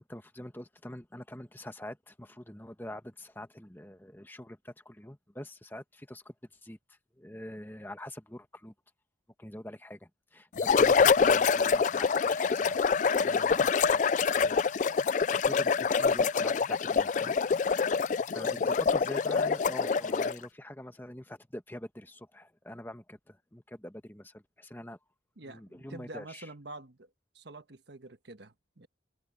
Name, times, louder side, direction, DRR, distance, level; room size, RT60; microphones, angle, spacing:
voice 1, 0.1-6.3 6.6-8.7 9.4-12.8 13.2-14.6 15.2-17.3 18.2-25.0 25.5-26.5, left 1 dB, 10° left, 1.2 m, -45 dB
sound 1, 10.6-20.5, left 5 dB, 40° left, 0.3 m, -26 dB
voice 2, 25.4-27.1 27.3-28.9, right 2 dB, 65° right, 1.4 m, -47 dB
head